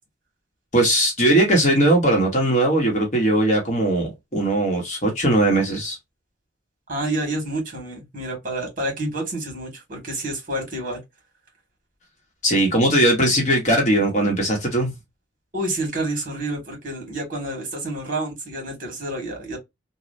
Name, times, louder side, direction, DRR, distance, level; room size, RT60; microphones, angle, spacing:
voice 1, 0.7-6.0 12.4-14.9, right 1 dB, 40° left, 1.1 m, -19 dB
voice 2, 6.9-11.0 15.5-19.6, right 1 dB, 45° right, 1.8 m, -29 dB
3.1 x 2.3 x 2.5 m
head